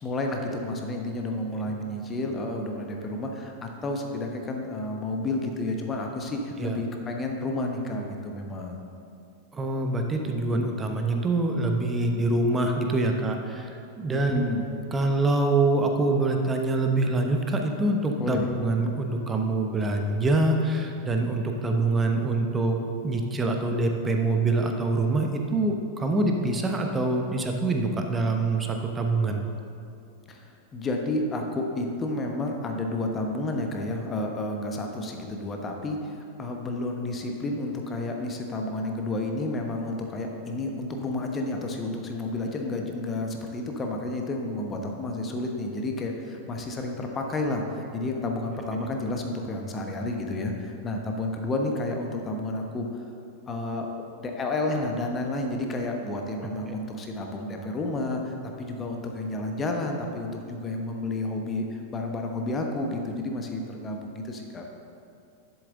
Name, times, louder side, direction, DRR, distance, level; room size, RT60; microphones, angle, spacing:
voice 1, 0.0-8.8 14.1-14.7 18.2-18.5 30.3-53.0 53.5-53.9 54.2-64.7, left 2 dB, 20° left, 2 dB, 1.0 m, -31 dB
voice 2, 9.5-14.4 14.9-29.4, right 2 dB, 15° right, 3 dB, 1.0 m, -25 dB
11.5 x 7.2 x 3.8 m, 2.5 s
figure-of-eight pair, 90°, 0 cm